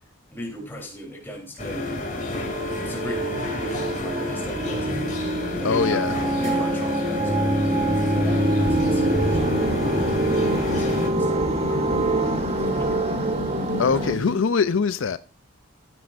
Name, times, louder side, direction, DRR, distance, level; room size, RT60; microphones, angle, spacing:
voice 1, 0.3-2.4 2.8-5.0 5.6-6.0 6.4-12.1 12.6-13.1 14.1-14.2, equal, 10° left, 3.4 m, -38 dB
sound 1, 1.6-11.1, left 3 dB, 35° left, 2.6 m, -31 dB
sound 2, 1.6-14.2, right 1 dB, 30° right, 1.1 m, -25 dB
voice 2, 5.6-6.1 13.8-15.2, left 5 dB, 75° left, 0.5 m, -22 dB
sound 3, 6.4-14.4, left 2 dB, 65° right, 3.4 m, -35 dB
14.5 x 9.5 x 2.5 m
head